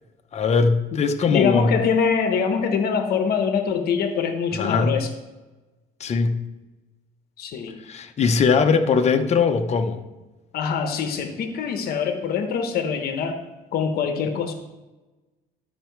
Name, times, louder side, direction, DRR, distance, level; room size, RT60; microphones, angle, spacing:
voice 1, 0.3-1.7 4.5-5.0 6.0-6.4 7.8-10.0, left 5 dB, 40° left, 6 dB, 0.8 m, -20 dB
voice 2, 1.3-5.1 7.4-7.8 10.5-13.4 13.7-14.5, left 6 dB, 65° left, 7 dB, 1.0 m, -24 dB
12.5 x 5.5 x 4.6 m, 1.1 s
cardioid pair, 110°, 17 cm